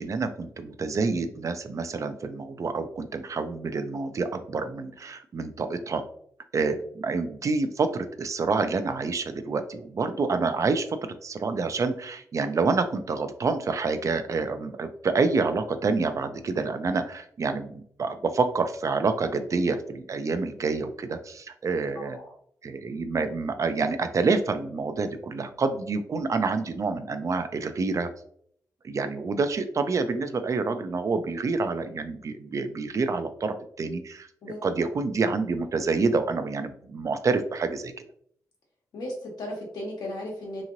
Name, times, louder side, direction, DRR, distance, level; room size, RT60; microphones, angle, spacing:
voice 1, 0.0-6.0 6.5-22.2 22.6-28.1 28.8-34.3 34.6-37.9, right 4 dB, 50° right, 9 dB, 0.4 m, -27 dB
voice 2, 21.9-22.3 34.4-34.9 38.9-40.6, left 1 dB, 85° left, -1 dB, 1.0 m, -36 dB
2.9 x 2.8 x 2.5 m, 0.64 s
cardioid pair, 70°, 7 cm